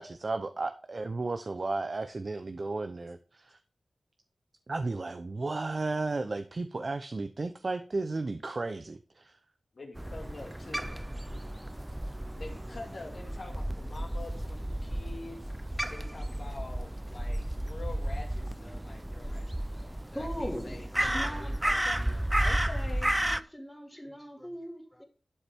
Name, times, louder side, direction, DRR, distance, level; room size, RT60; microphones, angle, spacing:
voice 1, 0.0-3.6 4.7-9.4, right 3 dB, 50° right, 0.7 m, -34 dB
voice 2, 9.7-10.9 12.4-15.5 15.9-23.2, left 3 dB, 60° left, 2.2 m, -46 dB
Crow, 10.0-23.4, right 1 dB, 10° right, 0.5 m, -33 dB
voice 3, 20.1-21.6 21.8-22.0 23.2-25.0, equal, 5° left, 2.3 m, -40 dB
11.5 x 7.1 x 3.6 m
wide cardioid pair, 85°, 0 cm